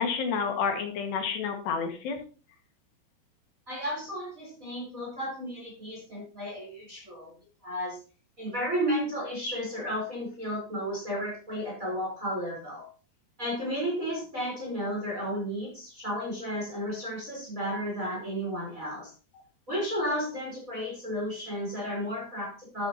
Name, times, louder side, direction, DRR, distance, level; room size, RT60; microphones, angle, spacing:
voice 1, 0.0-2.2, left 6 dB, 75° left, 4 dB, 3.9 m, -29 dB
voice 2, 3.7-7.3 7.6-8.0 8.4-12.9 13.4-19.1 19.7-22.9, equal, 20° right, -2 dB, 4.2 m, -33 dB
12.5 x 9.3 x 2.9 m, 0.35 s
omnidirectional pair, 5.0 m